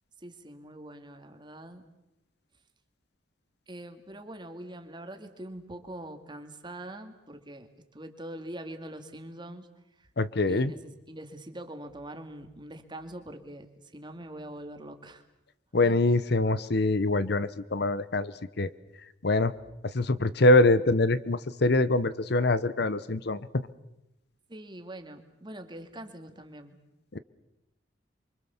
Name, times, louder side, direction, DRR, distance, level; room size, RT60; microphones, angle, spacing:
voice 1, 0.2-1.8 3.7-9.7 10.0-10.1 10.5-13.7 13.9-15.2 15.8-16.0 24.5-26.8, right 1 dB, 25° right, 7 dB, 2.3 m, -43 dB
voice 2, 10.2-10.7 15.7-18.3 18.6-18.7 19.2-19.5 19.9-23.4 27.1-27.2, left 2 dB, 60° left, 15 dB, 0.8 m, -24 dB
28.0 x 24.5 x 7.1 m, 0.90 s
head